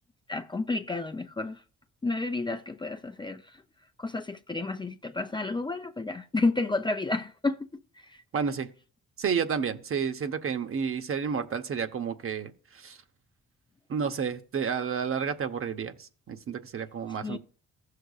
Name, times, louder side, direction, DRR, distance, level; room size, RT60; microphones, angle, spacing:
voice 1, 0.3-1.6 2.0-3.6 4.0-7.7 8.0-8.2 17.2-17.4, left 3 dB, 15° left, 0.5 m, -31 dB
voice 2, 8.3-8.7 9.2-13.0 13.9-17.4, right 6 dB, 45° right, 0.9 m, -31 dB
15.5 x 6.6 x 2.4 m
cardioid pair, 90°, 30 cm